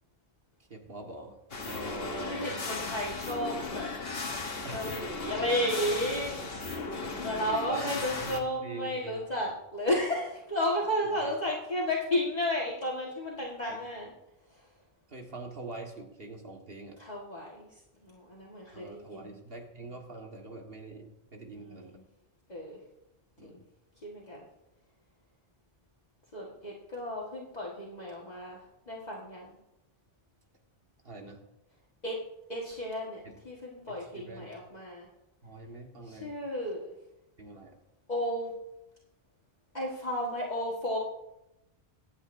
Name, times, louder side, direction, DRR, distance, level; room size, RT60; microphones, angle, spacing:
voice 1, 0.7-1.4 1.7-2.6 4.6-5.3 7.4-9.5 11.0-11.3 13.7-13.8 15.1-17.0 18.7-22.0 23.4-23.6 31.0-31.4 33.2-33.4 33.9-34.5 35.4-36.3 37.4-37.8, right 2 dB, 60° right, 1 dB, 2.0 m, -44 dB
sound 1, 1.5-8.4, left 3 dB, 65° left, 1.4 m, -36 dB
voice 2, 2.3-3.9 4.7-6.7 7.2-14.1 17.0-17.7 18.0-19.4 21.6-21.8 22.5-22.8 23.4-23.6 24.0-24.5 26.3-28.6 28.9-29.6 32.0-32.2 32.5-35.1 36.1-36.8 38.1-38.5 39.7-41.0, left 1 dB, 40° left, -5 dB, 1.8 m, -33 dB
24.0 x 8.6 x 2.7 m, 0.90 s
omnidirectional pair, 1.1 m